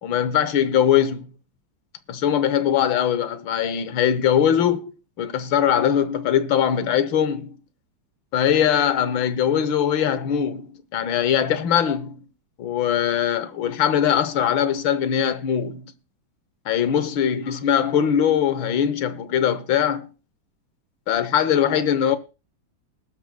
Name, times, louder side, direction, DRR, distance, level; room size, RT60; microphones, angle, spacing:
voice 1, 0.0-1.3 2.1-7.6 8.3-12.2 12.6-15.8 16.6-20.1 21.1-22.2, left 9 dB, 80° left, 1.7 m, -21 dB
20.0 x 11.5 x 2.2 m
omnidirectional pair, 2.1 m